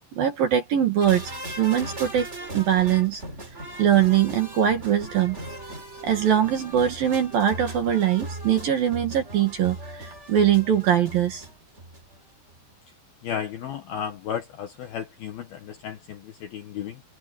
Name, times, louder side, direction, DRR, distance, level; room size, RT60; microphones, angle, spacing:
voice 1, 0.1-2.3 2.5-3.2 3.8-5.4 6.0-11.5, right 10 dB, 55° right, 2.9 m, -22 dB
sound 1, 1.0-12.2 12.5-12.6, right 1 dB, 15° right, 3.5 m, -38 dB
voice 2, 13.2-17.0, left 8 dB, 65° left, 2.5 m, -34 dB
omnidirectional pair, 6.0 m